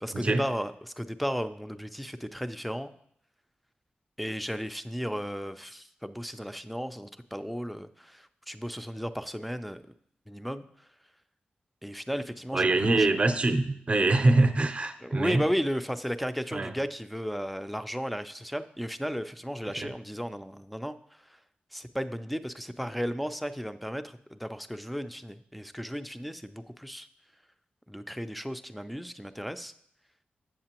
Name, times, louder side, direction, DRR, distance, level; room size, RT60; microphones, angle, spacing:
voice 1, 0.0-2.9 4.2-9.8 10.3-10.6 11.8-13.1 15.0-21.0 21.7-27.1 27.9-29.7, equal, ahead, 10 dB, 0.4 m, -34 dB
voice 2, 12.5-15.4 16.5-16.7 19.8-19.9, right 2 dB, 35° right, 8 dB, 0.6 m, -24 dB
7.5 x 7.3 x 2.9 m, 0.68 s
wide cardioid pair, 95°, 3 cm